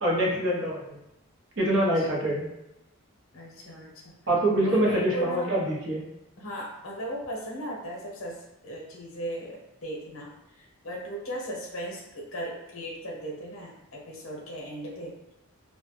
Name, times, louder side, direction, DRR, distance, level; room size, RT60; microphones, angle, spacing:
voice 1, 0.0-1.0 1.6-2.5 4.3-6.0, right 1 dB, 60° right, -4 dB, 0.7 m, -25 dB
voice 2, 2.0-2.4 3.3-4.1 4.6-5.5 6.4-10.3 10.6-15.1, right 1 dB, 75° left, -1 dB, 0.7 m, -37 dB
2.2 x 2.0 x 2.9 m, 0.89 s
head